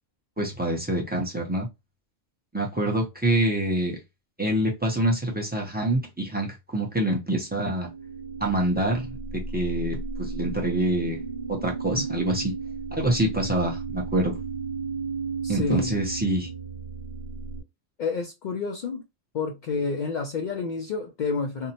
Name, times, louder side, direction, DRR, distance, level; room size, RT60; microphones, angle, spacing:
voice 1, 0.4-1.7 2.5-4.0 4.4-7.9 8.4-11.2 11.5-12.5 12.9-14.4 15.5-16.5, right 1 dB, 10° right, 0.5 m, -26 dB
sound 1, 7.5-17.6, right 4 dB, 55° right, 1.0 m, -34 dB
voice 2, 15.4-16.0 18.0-19.0 19.3-21.7, left 4 dB, 60° left, 0.5 m, -29 dB
2.7 x 2.1 x 2.7 m
omnidirectional pair, 1.2 m